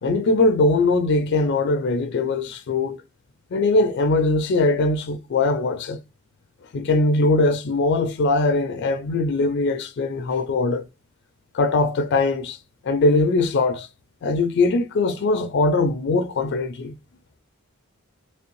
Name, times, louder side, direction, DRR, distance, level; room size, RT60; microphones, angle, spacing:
voice 1, 0.0-3.0 3.5-6.0 6.7-10.9 11.5-12.6 12.8-13.9 14.2-16.9, left 2 dB, 55° left, 0.4 m, -21 dB
3.4 x 3.2 x 3.0 m
head